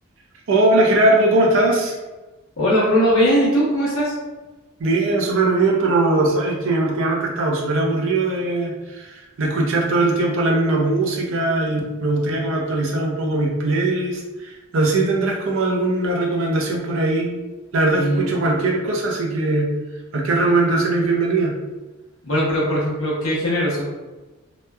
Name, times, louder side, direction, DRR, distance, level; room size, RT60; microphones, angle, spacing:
voice 1, 0.5-2.0 4.8-17.4 17.7-19.7 20.1-21.5, right 2 dB, 60° right, -1 dB, 0.5 m, -20 dB
voice 2, 2.6-4.1 17.9-18.7 22.2-23.9, equal, 65° left, -6 dB, 0.8 m, -20 dB
2.9 x 2.1 x 2.2 m, 1.1 s
head